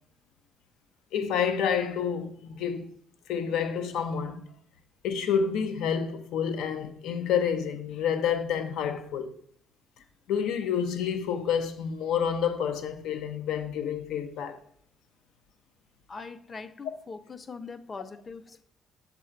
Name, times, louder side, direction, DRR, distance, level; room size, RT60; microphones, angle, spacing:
voice 1, 1.1-2.9 3.3-4.4 5.0-9.3 10.3-14.6, left 7 dB, 85° left, 0.6 m, -29 dB
voice 2, 16.1-18.6, left 4 dB, 35° left, 0.6 m, -42 dB
6.5 x 3.7 x 4.5 m
cardioid pair, 80°, 0 cm